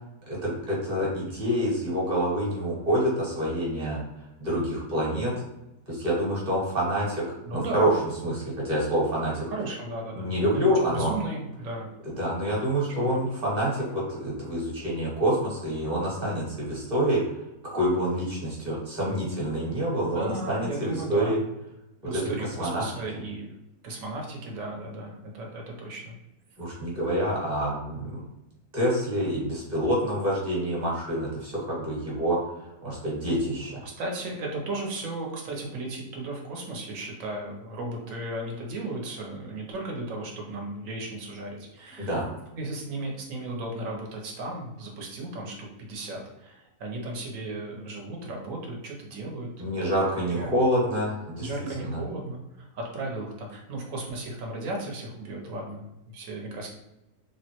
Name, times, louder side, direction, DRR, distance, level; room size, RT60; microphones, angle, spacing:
voice 1, 0.3-4.0 4.4-5.3 5.9-7.2 7.5-7.9 8.2-9.5 10.2-11.1 12.2-17.2 17.6-21.4 22.0-22.8 26.6-28.2 28.7-32.4 32.8-33.8 42.0-42.3 49.6-51.5 51.8-51.9, equal, 30° right, -5 dB, 1.1 m, -27 dB
voice 2, 7.4-7.9 9.5-11.9 12.9-13.2 20.1-21.4 22.0-23.5 23.8-26.1 33.8-42.2 42.5-49.5 49.8-50.5 51.4-55.8 56.1-56.7, right 2 dB, 65° right, 0 dB, 1.0 m, -35 dB
3.5 x 2.1 x 2.8 m, 0.91 s
omnidirectional pair, 1.6 m